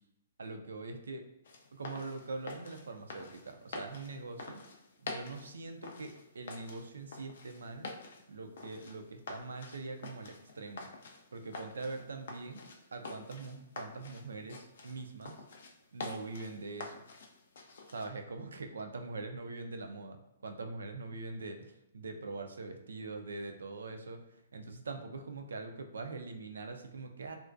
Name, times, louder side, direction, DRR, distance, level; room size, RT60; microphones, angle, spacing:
voice 1, 0.4-1.2 1.7-4.6 5.0-7.9 8.3-10.9 11.3-12.6 12.9-15.4 15.9-17.0 17.9-27.4, right 3 dB, 80° right, 5 dB, 0.3 m, -43 dB
sound 1, 1.4-18.1, left 3 dB, 65° left, 0.4 m, -47 dB
2.4 x 2.1 x 2.4 m, 0.80 s
hypercardioid pair, 130°, 0 cm